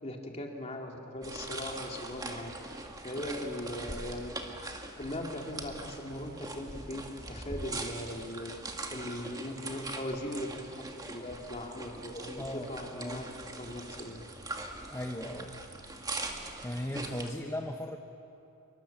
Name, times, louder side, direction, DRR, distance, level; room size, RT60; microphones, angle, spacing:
voice 1, 0.0-4.3 5.0-7.0 7.3-8.5 8.9-10.8 11.1-13.3 13.6-14.2, left 1 dB, 30° left, 1 dB, 2.8 m, -39 dB
sound 1, 1.2-17.3, right 2 dB, 15° right, 1.8 m, -42 dB
voice 2, 12.3-13.3 14.9-15.6 16.6-18.0, left 1 dB, 15° left, 3 dB, 1.0 m, -38 dB
27.0 x 23.5 x 7.4 m, 2.9 s
head